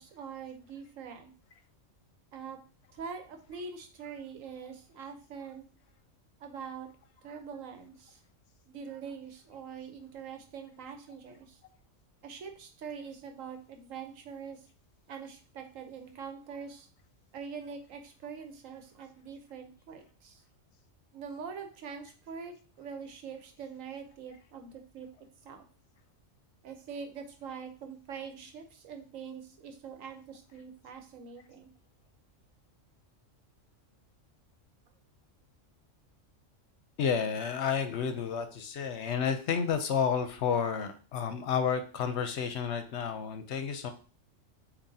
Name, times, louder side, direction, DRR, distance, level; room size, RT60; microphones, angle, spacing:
voice 1, 0.0-1.3 2.3-2.6 2.9-5.7 6.4-6.9 7.2-8.2 8.7-11.6 12.2-14.6 15.1-16.9 17.3-20.4 21.1-25.1 25.4-25.6 26.6-31.7, right 6 dB, 90° right, 5 dB, 1.2 m, -44 dB
voice 2, 37.0-43.9, left 7 dB, 65° left, 8 dB, 0.8 m, -31 dB
7.2 x 2.6 x 2.7 m, 0.39 s
omnidirectional pair, 1.3 m